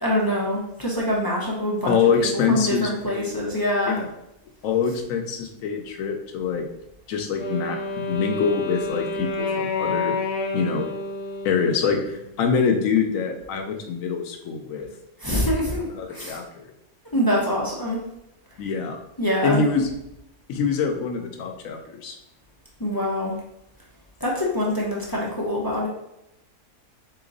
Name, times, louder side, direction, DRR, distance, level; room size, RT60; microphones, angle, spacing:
voice 1, 0.0-4.0 15.2-16.4 17.1-18.0 19.2-19.6 22.8-23.4 24.2-25.9, left 1 dB, 25° left, -5 dB, 0.5 m, -25 dB
voice 2, 1.9-3.3 3.9-4.0 4.6-6.6 7.1-10.2 10.5-10.9 11.4-14.9 15.9-16.7 18.6-19.0 19.4-19.9 20.5-22.2, left 5 dB, 65° left, 4 dB, 1.0 m, -25 dB
Wind instrument woodwind instrument, 7.4-12.4, left 3 dB, 90° left, 1.2 m, -29 dB
4.1 x 2.9 x 3.8 m, 0.85 s
omnidirectional pair, 1.6 m